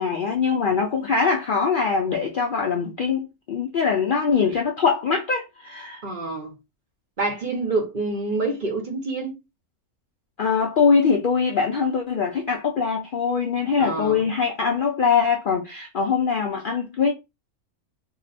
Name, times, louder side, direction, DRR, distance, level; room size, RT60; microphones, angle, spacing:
voice 1, 0.0-6.0 10.4-17.1, left 5 dB, 85° left, 0.4 m, -22 dB
voice 2, 6.0-6.6 7.2-9.4 13.8-14.3, right 3 dB, 40° right, 0.8 m, -27 dB
2.9 x 2.0 x 4.0 m
omnidirectional pair, 1.6 m